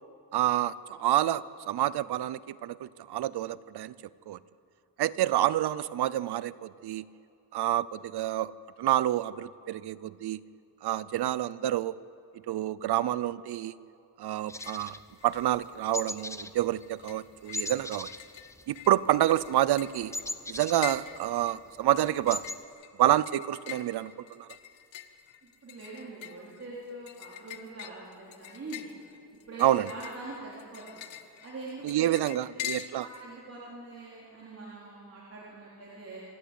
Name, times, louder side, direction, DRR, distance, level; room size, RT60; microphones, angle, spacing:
voice 1, 0.3-3.9 4.3-4.4 5.0-7.1 7.5-8.5 8.8-10.4 10.8-12.0 12.5-13.7 14.2-14.9 15.2-18.1 18.7-20.1 20.5-22.5 23.0-24.5 29.6-29.9 31.8-33.1, right 13 dB, 60° right, 19 dB, 0.7 m, -28 dB
sound 1, 14.4-14.9 15.2-15.9 16.2-33.2, left 11 dB, 90° left, 1.3 m, -45 dB
sound 2, 14.5-15.6 15.9-16.5 16.8-17.0 17.5-19.1 19.3-21.4 21.8-21.9 22.1-22.6, left 2 dB, 5° left, 0.6 m, -38 dB
voice 2, 25.6-28.9 29.5-31.1 31.4-32.1 32.5-32.7 33.2-36.2, right 2 dB, 35° right, -7 dB, 4.0 m, -43 dB
26.5 x 14.0 x 8.4 m, 2.6 s
cardioid pair, 130°, 43 cm